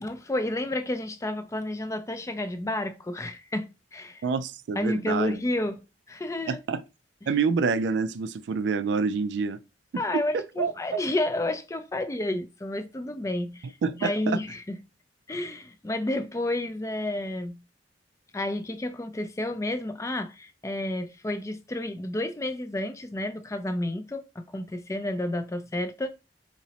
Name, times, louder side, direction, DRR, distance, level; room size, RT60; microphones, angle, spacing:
voice 1, 0.0-4.2 4.8-5.8 6.1-6.6 9.9-14.8 15.3-17.6 18.3-26.1, left 1 dB, 15° left, 0.4 m, -31 dB
voice 2, 4.2-5.4 6.5-6.8 7.3-9.6 10.6-11.0 13.8-14.4, right 5 dB, 70° right, 0.3 m, -27 dB
4.0 x 2.9 x 2.8 m
head